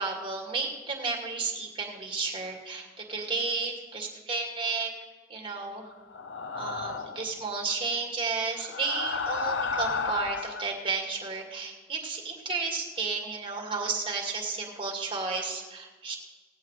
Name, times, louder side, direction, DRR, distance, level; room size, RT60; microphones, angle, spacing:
voice 1, 0.0-4.9 5.3-5.9 6.5-16.2, right 4 dB, 30° right, 1 dB, 2.2 m, -32 dB
sound 1, 6.1-7.3 8.6-10.7, left 4 dB, 85° left, 0.7 m, -32 dB
18.0 x 16.0 x 3.3 m, 1.3 s
head